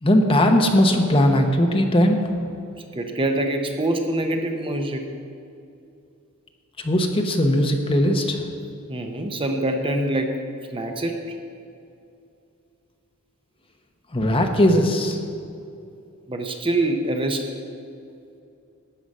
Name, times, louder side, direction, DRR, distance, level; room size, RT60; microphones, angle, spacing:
voice 1, 0.0-2.2 6.8-8.4 14.1-15.2, left 1 dB, 25° left, 4 dB, 0.9 m, -19 dB
voice 2, 2.9-5.1 8.9-10.4 10.7-11.4 16.3-17.5, right 1 dB, 25° right, 4 dB, 0.7 m, -25 dB
12.5 x 8.9 x 5.4 m, 2.6 s
head